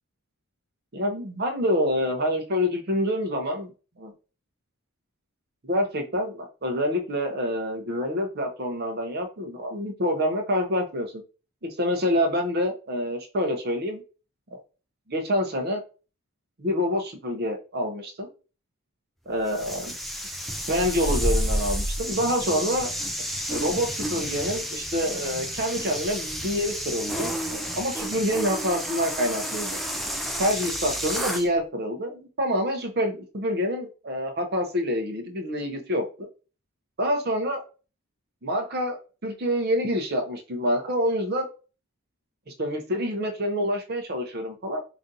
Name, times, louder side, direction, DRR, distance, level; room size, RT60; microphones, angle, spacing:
voice 1, 0.9-3.7 4.0-4.1 5.6-11.2 11.6-14.0 14.5-14.6 15.1-15.8 16.6-18.3 19.3-20.0 20.7-22.9 23.5-29.8 30.4-36.3 37.0-37.6 38.4-41.5 42.5-44.8, equal, 45° right, 4 dB, 0.7 m, -27 dB
sound 1, 19.5-31.5, equal, ahead, 0.3 m, -30 dB
5.0 x 2.5 x 2.7 m, 0.34 s
head